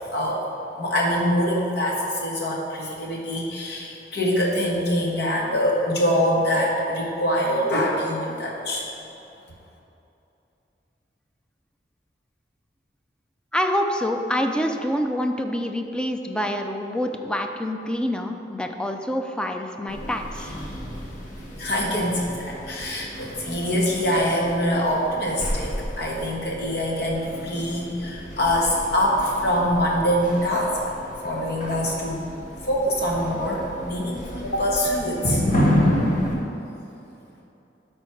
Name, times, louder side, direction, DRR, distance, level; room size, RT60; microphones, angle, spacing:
voice 1, 0.1-0.4 0.8-8.8 21.6-30.8 31.2-32.3 32.6-35.4, equal, 65° left, -2 dB, 1.5 m, -24 dB
voice 2, 13.5-20.5, equal, 5° left, 4 dB, 0.5 m, -26 dB
sound 1, 19.9-36.4, equal, 50° left, 1.7 m, -30 dB
12.5 x 4.3 x 4.6 m, 2.9 s
head